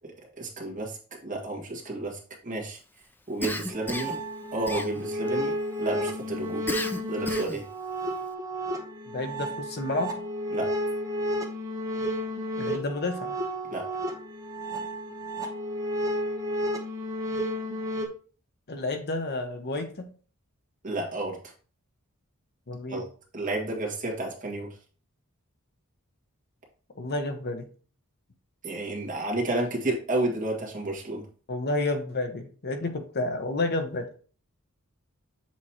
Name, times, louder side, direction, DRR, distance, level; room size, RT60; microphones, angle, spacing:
voice 1, 0.4-1.0 1.2-2.8 3.3-4.1 4.5-6.7 7.1-7.7 10.5-10.7 13.7-13.9 20.8-21.4 22.9-23.0 23.3-24.7 28.6-31.3, right 2 dB, 35° right, -1 dB, 1.7 m, -31 dB
Cough, 3.4-4.2 4.7-5.3 6.7-7.7, left 2 dB, 10° left, 0.4 m, -33 dB
sound 1, 3.7-18.1, equal, 15° right, 1.0 m, -32 dB
voice 2, 9.1-10.3 12.6-13.3 18.7-20.1 22.7-23.0 27.0-27.7 31.5-34.1, left 2 dB, 50° left, 6 dB, 0.9 m, -30 dB
7.4 x 3.0 x 4.2 m, 0.40 s
head